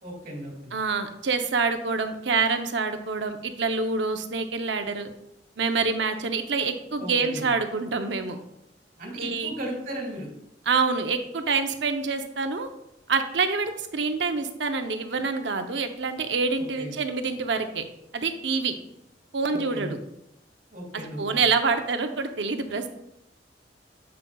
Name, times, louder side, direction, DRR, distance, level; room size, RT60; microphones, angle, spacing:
voice 1, 0.0-0.7 7.0-7.5 9.0-10.3 16.7-16.9 19.5-20.0 20.7-21.4, right 1 dB, 50° right, -1 dB, 2.4 m, -36 dB
voice 2, 0.7-5.1 5.6-8.4 9.2-9.5 10.7-12.7 13.1-17.8 18.1-18.7 19.3-20.0 21.2-22.9, right 4 dB, 80° right, 7 dB, 0.7 m, -26 dB
7.7 x 7.6 x 2.3 m, 0.84 s
head